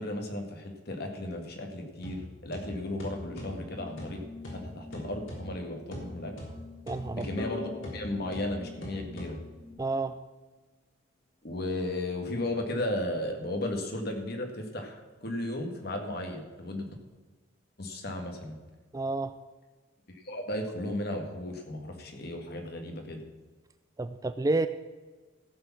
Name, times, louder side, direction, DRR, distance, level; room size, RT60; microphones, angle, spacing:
voice 1, 0.0-4.2 4.5-6.3 7.1-9.4 11.4-16.9 17.8-18.6 20.1-23.2, left 1 dB, 55° left, 3 dB, 1.9 m, -35 dB
sound 1, 2.0-9.7, equal, 80° left, 3.6 m, -43 dB
sound 2, 3.2-9.7, left 4 dB, 5° left, 4.4 m, -49 dB
voice 2, 6.9-7.3 9.8-10.1 18.9-19.4 24.0-24.7, right 2 dB, 20° right, 11 dB, 0.4 m, -29 dB
sound 3, 7.4-10.2, left 5 dB, 35° left, 2.1 m, -44 dB
14.5 x 7.0 x 5.9 m, 1.3 s
head